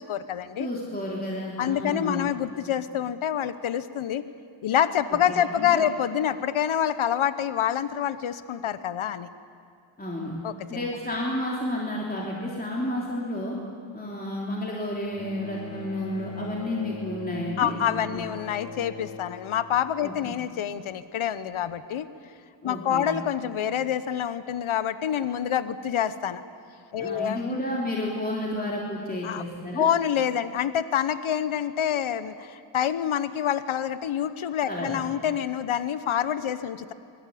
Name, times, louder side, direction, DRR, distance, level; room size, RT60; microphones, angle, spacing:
voice 1, 0.0-0.7 1.6-4.2 4.6-9.3 10.4-10.9 17.6-22.1 22.6-26.4 26.9-27.6 29.2-29.4 29.8-36.9, left 9 dB, 75° left, 13 dB, 1.0 m, -27 dB
voice 2, 0.6-2.3 5.3-5.8 10.0-10.4 10.7-13.6 13.9-17.7 18.1-18.2 20.0-20.3 22.6-23.1 27.0-29.9 34.7-34.9, left 1 dB, 20° left, -3 dB, 3.3 m, -31 dB
Bowed string instrument, 15.1-20.6 21.7-21.8, left 3 dB, 60° left, 2.7 m, -41 dB
24.0 x 21.5 x 8.5 m, 2.4 s
wide cardioid pair, 130°, 49 cm